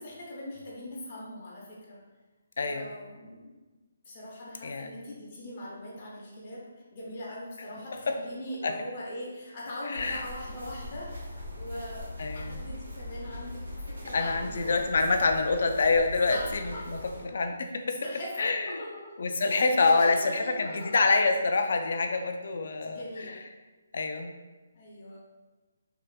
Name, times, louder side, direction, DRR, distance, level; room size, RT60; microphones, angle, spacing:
voice 1, 0.0-2.0 2.6-3.6 4.0-14.7 16.3-17.3 17.8-19.5 19.9-21.0 22.8-23.4 24.7-25.2, left 1 dB, 35° left, -5 dB, 0.8 m, -41 dB
voice 2, 2.6-2.9 4.6-4.9 7.9-8.2 8.6-8.7 9.9-10.2 12.2-12.6 14.1-17.0 17.2-18.0 18.4-18.8 19.2-23.4 23.9-24.4, left 3 dB, 60° left, 5 dB, 0.3 m, -26 dB
sound 1, 9.9-17.2, left 1 dB, 85° right, 1.2 m, -41 dB
3.3 x 2.8 x 2.4 m, 1.2 s
hypercardioid pair, 165°, 0 cm